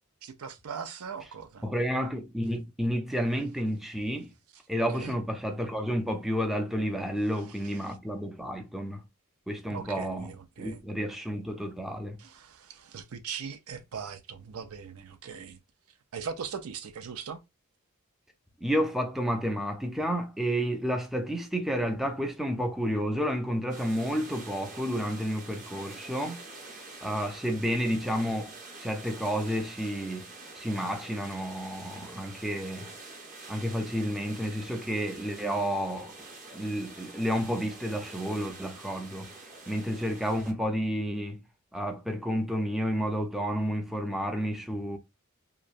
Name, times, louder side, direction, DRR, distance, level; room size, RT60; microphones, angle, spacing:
voice 1, 0.2-1.6 4.9-5.2 7.8-7.9 9.7-10.8 12.2-15.6 16.1-17.4, right 6 dB, 80° right, 0.5 m, -40 dB
voice 2, 1.6-4.3 4.7-9.0 9.5-12.2 18.6-26.4 26.7-28.5 28.8-33.0 33.5-36.1 36.5-39.4 39.7-41.4 41.7-45.0, equal, ahead, 0.4 m, -31 dB
sound 1, 23.7-40.5, right 3 dB, 35° right, 0.9 m, -46 dB
3.0 x 2.2 x 2.4 m
head